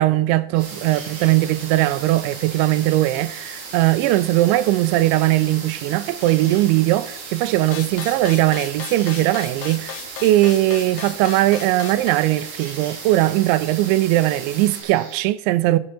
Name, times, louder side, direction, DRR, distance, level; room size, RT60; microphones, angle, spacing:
voice 1, 0.0-15.8, right 16 dB, 90° right, 2.9 m, -19 dB
sound 1, 0.5-15.2, right 4 dB, 55° right, 3.0 m, -42 dB
sound 2, 0.6-14.8, right 5 dB, 70° right, 4.1 m, -38 dB
sound 3, 7.7-12.1, left 10 dB, 80° left, 2.8 m, -35 dB
13.5 x 5.5 x 7.0 m
omnidirectional pair, 5.2 m